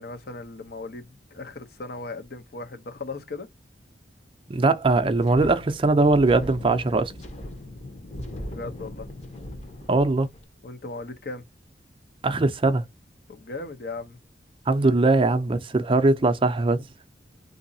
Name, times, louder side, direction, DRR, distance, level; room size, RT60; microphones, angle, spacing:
voice 1, 0.0-3.5 8.5-9.1 10.6-11.4 13.3-14.2, left 3 dB, 60° left, 0.7 m, -37 dB
voice 2, 4.5-7.1 9.9-10.3 12.2-12.8 14.7-16.8, right 3 dB, 30° right, 0.4 m, -21 dB
Wind, 5.0-10.4, left 1 dB, 40° left, 0.9 m, -39 dB
3.8 x 2.7 x 2.6 m
head